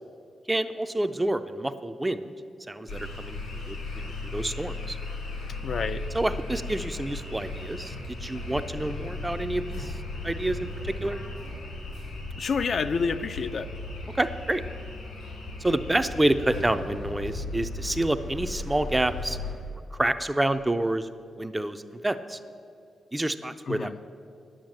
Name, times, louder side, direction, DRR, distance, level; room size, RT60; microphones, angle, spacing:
voice 1, 0.5-2.3 2.7-5.0 6.1-10.0 10.2-11.2 14.1-14.6 15.6-19.4 19.9-21.1 21.4-22.4 23.1-24.0, right 1 dB, 15° right, 10 dB, 0.4 m, -28 dB
sound 1, 2.9-19.5, left 2 dB, 85° left, 3.1 m, -36 dB
voice 2, 5.6-6.0 12.4-13.7 23.7-24.0, left 5 dB, 55° left, 10 dB, 0.4 m, -28 dB
10.0 x 8.8 x 7.7 m, 2.4 s
wide cardioid pair, 120°, 0 cm